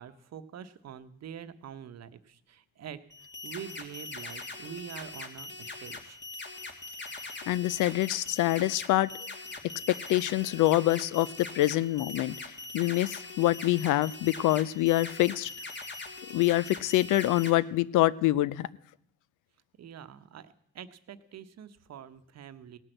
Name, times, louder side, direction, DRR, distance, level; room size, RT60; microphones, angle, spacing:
voice 1, 0.0-3.0 3.4-6.2 19.8-22.8, right 8 dB, 60° right, 12 dB, 0.9 m, -45 dB
sound 1, 3.1-17.5, left 3 dB, 35° left, 2.0 m, -42 dB
voice 2, 7.5-9.1 9.9-12.4 12.7-15.5 16.3-18.7, left 15 dB, 85° left, 20 dB, 0.6 m, -25 dB
17.5 x 6.1 x 7.7 m, 0.70 s
cardioid pair, 90°, 30 cm